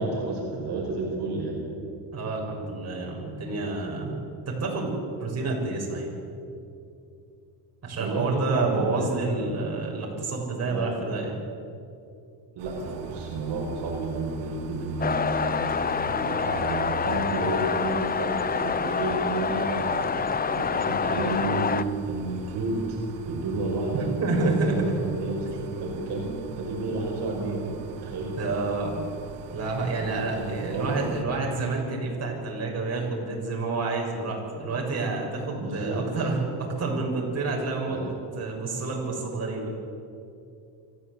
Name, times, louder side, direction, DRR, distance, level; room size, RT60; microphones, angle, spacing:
voice 1, 0.0-1.6 8.0-9.3 10.6-10.9 12.5-16.0 16.3-24.1 24.4-26.2 26.6-28.4 29.8-31.2 35.6-36.0 37.9-38.0, right 3 dB, 60° right, -1 dB, 5.3 m, -31 dB
voice 2, 2.1-4.1 4.5-4.9 5.2-6.1 7.8-11.4 16.1-16.3 23.9-25.0 28.4-29.0 29.5-39.7, right 3 dB, 35° right, -2 dB, 6.8 m, -29 dB
sound 1, 12.6-31.2, right 7 dB, 85° right, 2.1 m, -45 dB
sound 2, 15.0-21.8, left 6 dB, 20° left, 0.7 m, -27 dB
25.5 x 15.0 x 8.4 m, 2.6 s
cardioid pair, 115°, 46 cm